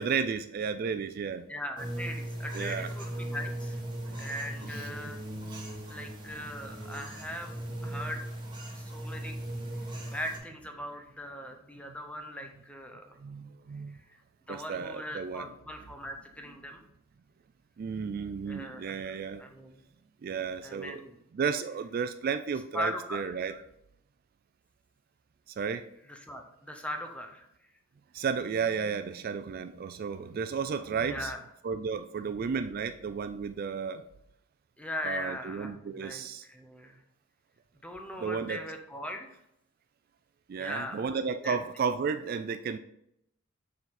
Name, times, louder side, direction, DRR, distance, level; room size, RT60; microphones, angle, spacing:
voice 1, 0.0-1.5 2.5-2.9 4.7-4.9 5.5-5.7 7.9-8.0 13.2-14.0 14.5-15.5 17.8-19.4 20.2-21.0 21.3-23.6 25.6-25.9 28.1-31.3 31.6-34.0 35.0-36.5 38.2-38.6 40.5-42.8, right 6 dB, 45° right, 10 dB, 0.3 m, -33 dB
voice 2, 1.5-3.8 4.2-5.2 5.9-7.5 7.8-8.3 8.7-9.4 10.1-13.2 13.9-14.2 14.5-16.8 18.5-19.8 20.6-21.2 22.7-23.4 26.1-27.5 31.0-31.4 34.8-37.0 37.8-39.4 40.6-41.1 41.4-41.6, left 1 dB, 5° left, 4 dB, 0.8 m, -39 dB
sound 1, 1.8-10.4, right 1 dB, 20° right, 1.6 m, -38 dB
6.8 x 4.0 x 4.1 m, 0.77 s
head